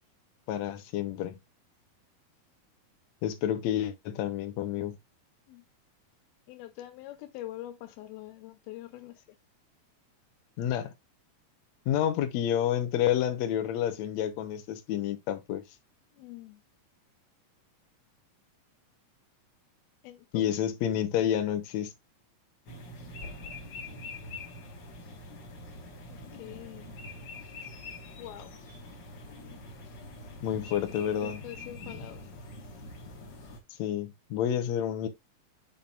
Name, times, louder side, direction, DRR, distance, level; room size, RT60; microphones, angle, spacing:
voice 1, 0.5-1.4 3.2-5.0 10.6-10.9 11.9-15.6 20.3-21.9 30.4-31.4 33.8-35.1, left 10 dB, 70° left, 1.7 m, -29 dB
voice 2, 6.5-9.2 16.2-16.6 20.0-20.5 26.1-26.9 28.2-28.5 30.8-32.2, left 14 dB, 90° left, 2.8 m, -45 dB
sound 1, 22.7-33.6, left 2 dB, 50° left, 1.3 m, -44 dB
7.1 x 5.9 x 2.4 m
omnidirectional pair, 4.2 m